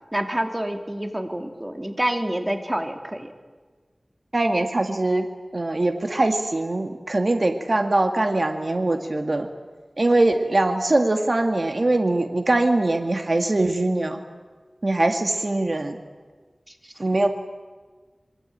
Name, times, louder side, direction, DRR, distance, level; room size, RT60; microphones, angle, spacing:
voice 1, 0.1-3.3 16.8-16.9, right 1 dB, 20° right, 5 dB, 3.2 m, -27 dB
voice 2, 4.3-5.3 5.5-9.5 10.0-14.2 14.8-16.0 17.0-17.3, right 2 dB, 50° right, 5 dB, 2.0 m, -22 dB
26.5 x 23.0 x 9.0 m, 1.4 s
wide cardioid pair, 65°, 0 cm